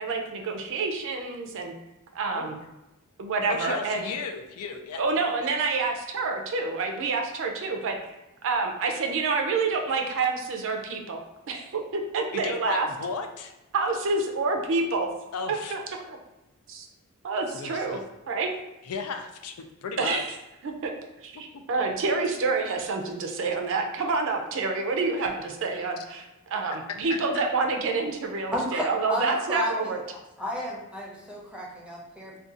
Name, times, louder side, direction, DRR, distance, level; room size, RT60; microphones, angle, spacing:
voice 1, 0.0-1.7 2.1-2.6 3.2-4.0 5.0-8.0 8.4-11.2 11.5-12.9 13.7-15.1 15.5-15.8 16.1-16.2 16.7-16.9 17.2-18.0 18.3-18.5 20.0-20.3 20.6-20.9 21.2-30.0, right 4 dB, 60° right, 4 dB, 0.5 m, -28 dB
voice 2, 3.5-5.0 12.3-13.5 15.3-15.8 17.5-18.0 18.8-19.5 19.8-20.2 21.5-21.9 27.1-27.4, left 5 dB, 80° left, 5 dB, 0.4 m, -35 dB
voice 3, 28.5-30.0 30.4-32.4, equal, 5° right, -3 dB, 0.6 m, -32 dB
2.6 x 2.3 x 3.7 m, 1.0 s
head